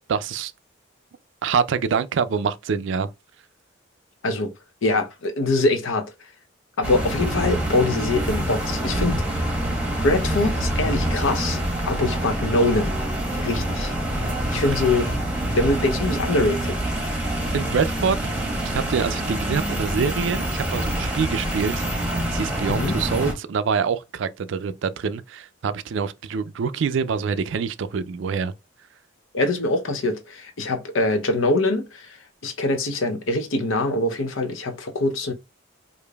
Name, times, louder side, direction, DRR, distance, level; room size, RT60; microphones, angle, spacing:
voice 1, 0.1-0.5 1.4-3.1 17.5-21.9 22.3-28.5, right 6 dB, 65° right, 0.4 m, -25 dB
voice 2, 4.8-6.1 6.8-9.5 10.0-11.6 11.9-13.0 13.3-13.9 14.5-15.1 15.5-16.8 22.7-23.0 29.3-32.2 32.4-35.3, left 2 dB, 75° left, 0.7 m, -23 dB
sound 1, 6.8-23.3, right 1 dB, 5° right, 0.9 m, -26 dB
4.9 x 2.6 x 2.3 m
head